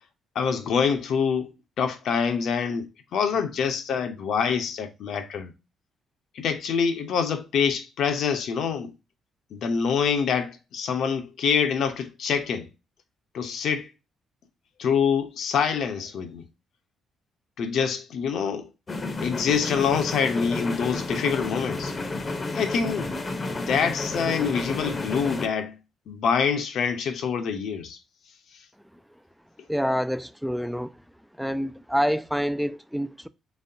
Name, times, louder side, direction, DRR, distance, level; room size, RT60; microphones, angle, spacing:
voice 1, 0.3-1.5 1.8-2.9 3.1-5.5 6.4-8.9 9.5-12.7 13.3-13.9 14.8-16.4 17.6-18.7 19.2-21.9 22.5-23.1 23.5-25.8 26.1-28.0, left 6 dB, 70° left, 0.7 m, -25 dB
sound 1, 18.9-25.5, left 3 dB, 35° left, 0.7 m, -31 dB
voice 2, 29.7-30.9 31.4-33.3, equal, ahead, 0.3 m, -27 dB
4.2 x 3.2 x 2.6 m
cardioid pair, 90°, 0 cm